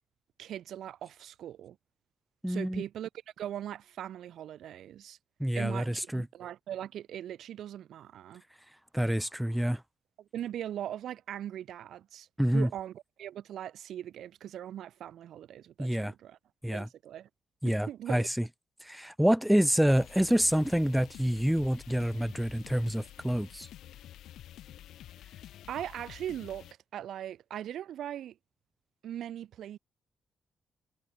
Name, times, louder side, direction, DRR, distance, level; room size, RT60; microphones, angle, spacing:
voice 1, 0.4-1.8 2.5-3.1 3.4-5.2 5.6-8.4 10.2-12.3 12.5-16.4 16.7-17.3 17.6-18.3 25.7-26.7 26.9-28.4 29.0-29.8, right 11 dB, 70° right, 5.7 m, -40 dB
voice 2, 2.4-2.8 5.4-6.2 8.9-9.8 12.4-12.7 15.8-16.1 16.6-16.9 17.6-18.4 18.8-23.7, equal, ahead, 1.7 m, -27 dB
sound 1, 19.9-26.7, left 12 dB, 90° left, 2.6 m, -49 dB
wide cardioid pair, 165°, 0 cm